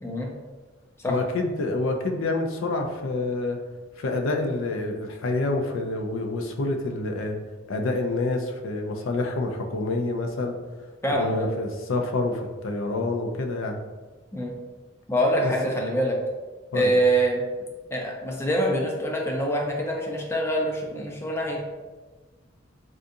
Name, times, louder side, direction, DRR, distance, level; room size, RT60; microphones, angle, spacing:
voice 1, 0.0-0.3 1.0-1.1 11.0-11.5 14.3-14.5 15.1-16.2 16.7-17.4 17.9-21.7, right 1 dB, 15° left, -1 dB, 0.4 m, -25 dB
voice 2, 1.1-3.6 4.0-7.4 7.7-10.6 11.1-13.8 15.4-15.5 16.7-16.9, left 2 dB, 90° left, 3 dB, 0.4 m, -27 dB
3.7 x 2.4 x 2.6 m, 1.3 s
head